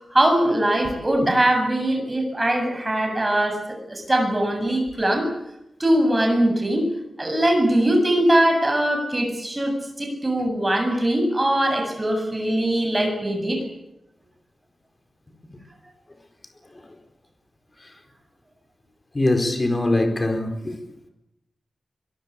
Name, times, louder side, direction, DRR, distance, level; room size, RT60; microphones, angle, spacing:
voice 1, 0.0-5.3 5.8-6.9 7.2-13.6, right 1 dB, 20° right, 7.6 m, -21 dB
voice 2, 19.1-20.7, left 2 dB, 25° left, 4.6 m, -22 dB
24.0 x 22.5 x 8.5 m
wide cardioid pair, 105°, 0 cm